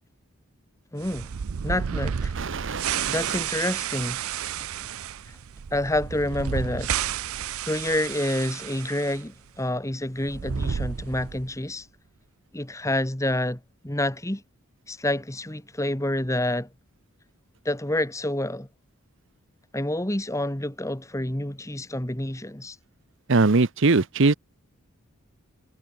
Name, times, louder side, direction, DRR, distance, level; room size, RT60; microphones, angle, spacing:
voice 1, 0.9-1.3 1.6-2.3 3.1-4.2 5.3-5.4 5.7-6.9 7.7-11.9 12.5-14.4 14.9-16.7 17.6-18.7 19.7-22.8, left 1 dB, 15° left, 1.6 m, -28 dB
sound 1, 1.0-9.2 9.5-9.6 10.2-11.6, right 8 dB, 75° right, 0.5 m, -31 dB
voice 2, 2.4-3.4 23.3-24.3, right 3 dB, 60° right, 0.8 m, -22 dB
head